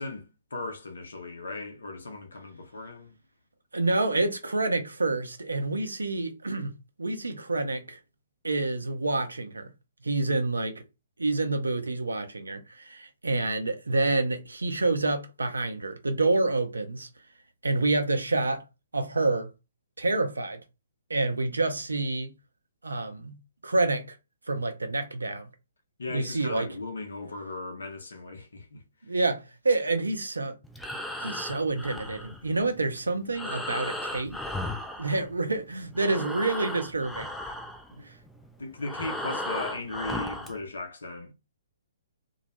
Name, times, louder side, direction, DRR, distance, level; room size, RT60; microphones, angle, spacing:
voice 1, 0.0-3.2 26.0-28.8 38.6-41.3, left 2 dB, 65° left, 0.6 m, -37 dB
voice 2, 3.7-6.7 7.0-8.0 8.4-9.7 10.0-10.8 11.2-17.1 17.6-18.6 18.9-19.5 20.0-20.6 21.1-22.3 22.8-23.4 23.6-24.2 24.5-25.5 26.1-26.7 29.0-30.6 31.2-34.4 35.0-37.3 38.0-38.1, right 2 dB, 75° right, 0.5 m, -28 dB
Breathing, 30.6-35.6 35.9-40.6, left 1 dB, 5° left, 0.3 m, -36 dB
2.2 x 2.0 x 2.9 m
figure-of-eight pair, 125°, 0 cm